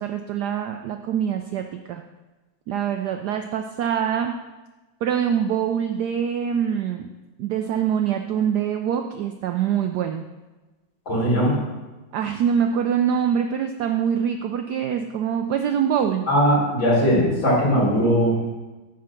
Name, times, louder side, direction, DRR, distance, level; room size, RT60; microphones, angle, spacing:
voice 1, 0.0-2.0 2.7-4.4 5.0-7.1 7.4-10.2 12.1-16.3, right 8 dB, 75° right, 5 dB, 0.9 m, -24 dB
voice 2, 11.1-11.6 16.3-18.4, equal, 70° left, -6 dB, 4.4 m, -19 dB
10.5 x 3.7 x 7.3 m, 1.2 s
omnidirectional pair, 2.2 m